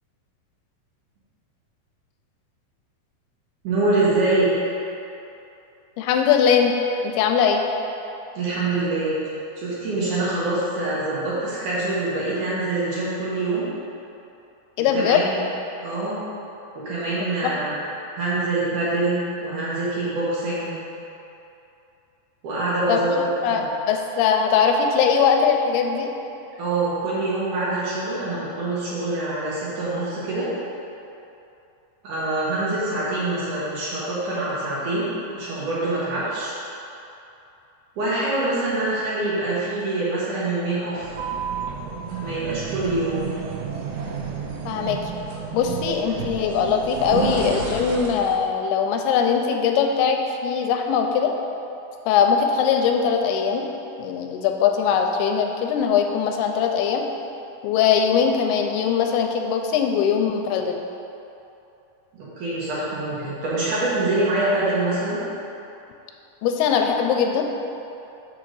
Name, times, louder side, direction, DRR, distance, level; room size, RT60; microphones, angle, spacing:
voice 1, 3.6-4.5 8.4-9.1 9.6-13.7 14.8-15.4 15.8-16.2 16.8-17.7 18.2-20.8 22.4-23.2 23.5-23.7 26.6-30.5 32.0-36.5 38.0-41.1 42.2-43.3 62.2-65.2, right 2 dB, 65° right, -9 dB, 2.5 m, -25 dB
voice 2, 6.0-6.7 7.0-7.6 14.8-15.3 17.4-17.5 22.9-23.0 23.4-23.6 23.9-26.1 44.7-45.0 45.5-51.3 52.1-53.6 54.0-57.0 57.6-60.8 66.4-67.5, left 7 dB, 85° left, 4 dB, 2.5 m, -21 dB
sound 1, 41.0-48.5, right 6 dB, 85° right, 1.9 m, -31 dB
6.4 x 3.7 x 6.1 m, 2.8 s
omnidirectional pair, 4.5 m